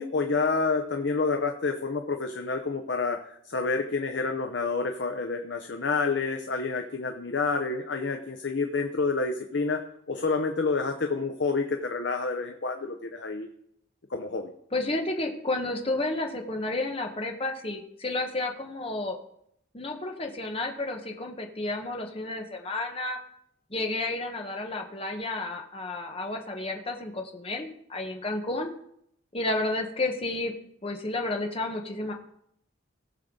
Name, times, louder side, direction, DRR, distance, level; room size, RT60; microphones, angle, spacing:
voice 1, 0.0-9.8 10.1-13.5 14.1-14.5, left 4 dB, 60° left, 5 dB, 0.8 m, -28 dB
voice 2, 14.7-19.1 19.7-23.2 23.7-28.7 29.3-30.5 30.8-32.1, left 2 dB, 30° left, 3 dB, 1.2 m, -31 dB
18.5 x 6.6 x 3.8 m, 0.73 s
head